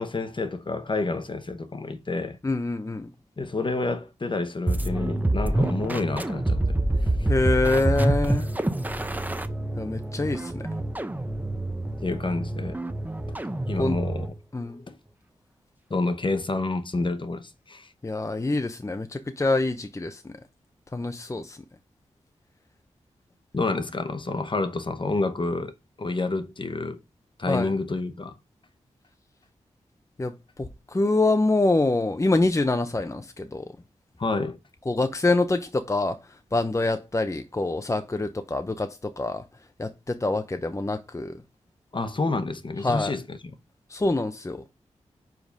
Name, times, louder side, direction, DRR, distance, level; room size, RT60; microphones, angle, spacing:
voice 1, 0.0-2.4 3.4-6.8 12.0-12.8 13.3-13.4 13.7-14.3 14.6-15.0 15.9-17.9 23.5-25.7 26.0-27.0 27.4-28.3 34.2-34.6 41.9-43.5, left 3 dB, 40° left, 1.0 m, -29 dB
voice 2, 2.4-3.1 7.3-8.5 9.8-10.6 13.8-14.0 14.5-14.8 18.0-20.3 20.9-21.6 27.5-27.7 30.2-30.3 30.6-33.6 34.9-36.2 36.5-39.4 39.8-41.3 42.8-43.1 43.9-44.6, left 2 dB, 25° left, 0.7 m, -25 dB
sound 1, 4.7-14.4, right 1 dB, 15° right, 0.8 m, -27 dB
5.1 x 3.9 x 5.2 m
cardioid pair, 45°, 12 cm